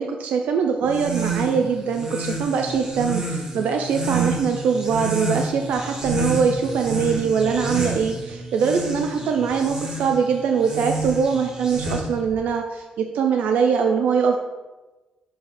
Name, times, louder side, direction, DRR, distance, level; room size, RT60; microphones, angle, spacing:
voice 1, 0.0-14.4, right 6 dB, 85° right, 4 dB, 0.4 m, -22 dB
sound 1, 0.8-12.3, right 2 dB, 30° right, 1.0 m, -29 dB
sound 2, 4.1-4.3 5.0-5.5 6.6-6.8 7.8-8.0 8.3-8.5 9.5-9.7, left 2 dB, 25° left, 1.0 m, -45 dB
6.9 x 2.6 x 5.6 m, 1.1 s
cardioid pair, 125°, 3 cm